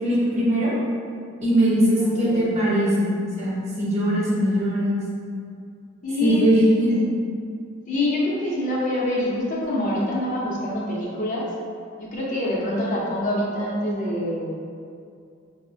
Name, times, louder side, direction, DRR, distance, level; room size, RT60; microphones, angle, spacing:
voice 1, 0.0-0.7 1.4-5.0 6.2-7.0, equal, 35° right, -7 dB, 0.7 m, -21 dB
voice 2, 2.1-2.5 6.0-6.5 6.9-7.0 7.9-11.5 12.0-14.6, left 1 dB, 40° left, -5 dB, 0.6 m, -25 dB
4.6 x 2.0 x 2.6 m, 2.4 s
head